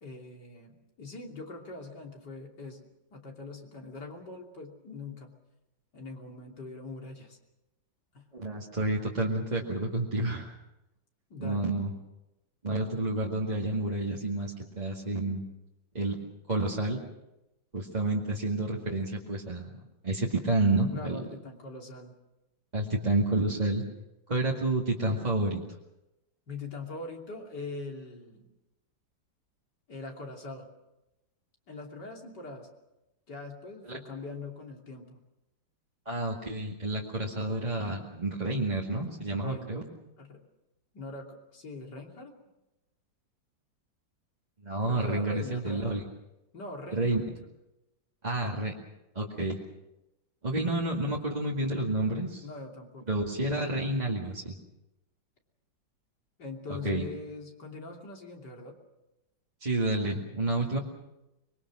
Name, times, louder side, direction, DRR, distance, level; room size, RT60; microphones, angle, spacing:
voice 1, 0.0-2.8 3.1-5.3 5.9-7.4 8.1-8.3 11.3-11.8 20.9-22.1 26.5-28.5 29.9-30.7 31.7-32.7 33.3-35.2 39.3-39.8 40.2-40.4 40.9-42.3 44.8-46.0 46.5-47.3 48.5-48.7 52.4-53.2 56.4-58.8, left 3 dB, 65° left, 1 dB, 3.7 m, -42 dB
voice 2, 8.3-10.5 11.4-11.9 12.6-15.4 15.9-16.2 16.5-17.0 17.7-19.7 20.0-21.2 22.7-23.8 24.3-25.6 33.9-34.0 36.1-39.8 44.6-46.0 46.9-47.2 48.2-48.7 49.2-49.6 50.4-52.4 53.1-54.6 56.7-57.1 59.6-60.8, right 2 dB, 20° right, -3 dB, 2.1 m, -29 dB
24.5 x 22.5 x 6.3 m, 0.95 s
omnidirectional pair, 2.0 m